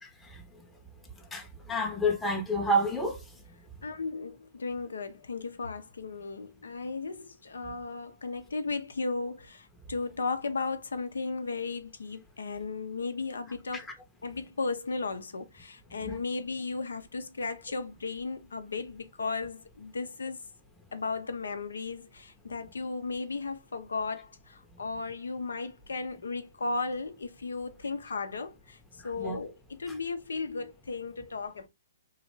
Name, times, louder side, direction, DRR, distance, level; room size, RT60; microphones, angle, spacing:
voice 1, 1.3-3.2 13.7-13.8 16.0-16.2 29.2-29.4, equal, 5° left, 0.7 m, -29 dB
voice 2, 3.8-13.8 14.2-20.4 20.9-28.8 29.0-31.7, left 4 dB, 85° left, 0.6 m, -35 dB
3.2 x 2.4 x 3.0 m
hypercardioid pair, 135°, 0 cm